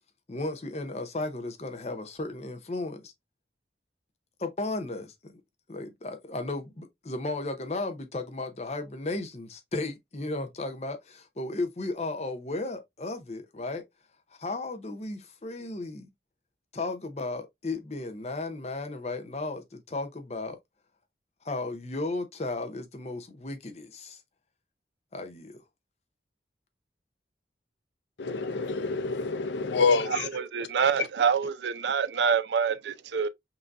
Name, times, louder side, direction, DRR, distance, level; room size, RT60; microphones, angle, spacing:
voice 1, 0.3-3.1 4.4-5.1 5.7-13.8 14.4-16.1 16.7-20.6 21.4-24.2 25.1-25.5, left 2 dB, 40° left, 0.7 m, -34 dB
voice 2, 28.2-30.3, left 4 dB, 85° left, 0.6 m, -27 dB
voice 3, 30.1-33.3, right 6 dB, 80° right, 0.5 m, -26 dB
5.6 x 2.7 x 2.5 m
head